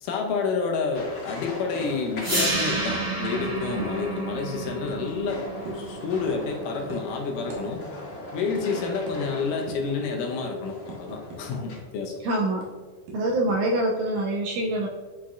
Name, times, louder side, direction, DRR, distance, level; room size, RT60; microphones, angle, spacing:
voice 1, 0.0-5.4 5.7-7.8 8.3-12.1, left 5 dB, 75° left, 2 dB, 2.2 m, -29 dB
sound 1, 0.9-11.8, left 1 dB, 45° left, 2.2 m, -41 dB
sound 2, 2.2-8.2, right 2 dB, 30° right, 0.7 m, -31 dB
sound 3, 2.4-2.6 2.9-3.1 3.3-3.5 3.8-3.9 4.6-5.2 5.6-5.8 6.3-6.5 6.9-7.1 7.5-7.6 7.9-8.1 8.5-8.6 9.1-9.2 9.7-9.9 10.3-11.8 12.1-12.2 12.6-13.6, right 2 dB, 65° right, 2.6 m, -39 dB
voice 2, 12.2-12.7 13.1-14.9, right 1 dB, 80° right, 0 dB, 1.8 m, -25 dB
9.2 x 4.4 x 2.5 m, 1.4 s
omnidirectional pair, 4.0 m